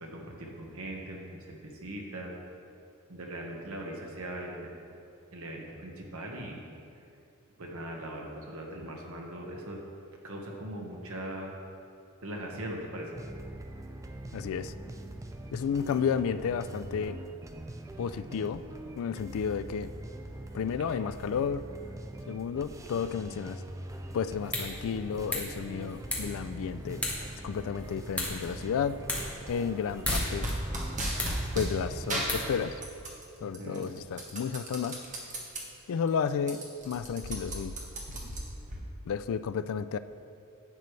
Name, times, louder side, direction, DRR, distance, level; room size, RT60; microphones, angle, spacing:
voice 1, 0.0-2.3 3.1-4.7 5.3-6.6 7.6-9.8 10.2-11.5 12.2-13.2 33.4-33.9, right 1 dB, 70° right, 0 dB, 1.3 m, -40 dB
sound 1, 13.1-32.9, right 1 dB, 15° right, 0.4 m, -43 dB
voice 2, 14.3-14.7 15.5-17.2 18.0-18.6 19.0-19.9 20.5-21.7 22.3-23.6 24.1-27.0 27.4-29.0 29.5-30.5 31.5-32.8 33.4-35.0 35.9-37.8 39.1-40.0, left 6 dB, 65° left, 13 dB, 0.3 m, -32 dB
sound 2, 24.2-33.1, left 1 dB, 5° left, 1.4 m, -38 dB
sound 3, 30.1-31.7 32.1-33.2 33.5-35.6 36.0-36.1 36.4-38.8, right 1 dB, 35° right, 1.4 m, -35 dB
11.0 x 8.1 x 3.2 m, 2.6 s
head